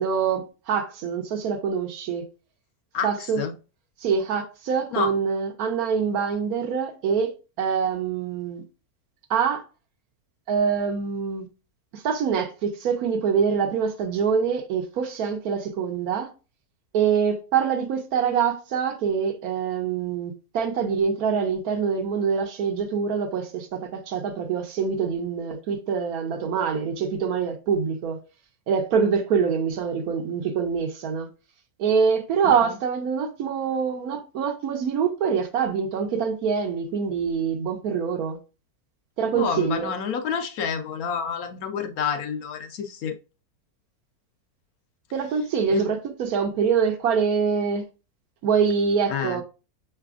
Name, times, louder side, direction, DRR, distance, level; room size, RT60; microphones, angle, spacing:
voice 1, 0.0-2.2 3.0-3.4 4.0-8.6 9.3-9.6 10.5-11.5 11.9-16.3 16.9-28.2 28.7-31.3 31.8-38.4 39.2-39.9 45.1-47.8 48.4-49.4, right 6 dB, 70° right, 1.1 m, -25 dB
voice 2, 39.3-43.1 45.7-45.8 49.1-49.4, left 6 dB, 70° left, 1.0 m, -28 dB
5.8 x 3.2 x 2.4 m
omnidirectional pair, 1.7 m